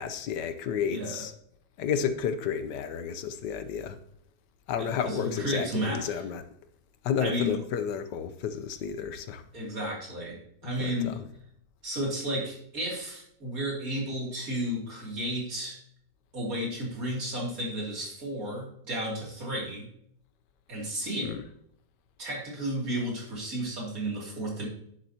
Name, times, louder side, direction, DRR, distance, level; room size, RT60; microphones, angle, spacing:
voice 1, 0.0-1.3 1.8-4.0 4.7-6.4 7.0-9.4 10.6-11.2 21.2-21.4, left 7 dB, 80° left, 1.4 m, -31 dB
voice 2, 0.9-1.2 4.8-6.2 7.2-7.6 9.5-11.1 11.8-15.8 16.3-19.9 20.7-21.4 22.2-24.7, equal, 55° right, 3.2 m, -33 dB
10.0 x 7.6 x 2.9 m
omnidirectional pair, 1.9 m